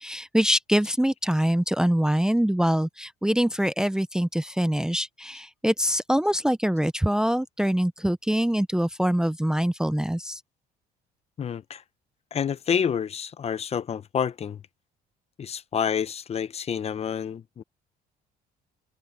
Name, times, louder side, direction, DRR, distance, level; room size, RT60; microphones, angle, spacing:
voice 1, 0.0-10.4, equal, 5° right, 0.7 m, -24 dB
voice 2, 11.4-11.8 12.3-14.6 15.4-17.6, left 7 dB, 40° left, 0.9 m, -28 dB
cardioid pair, 110°, 17 cm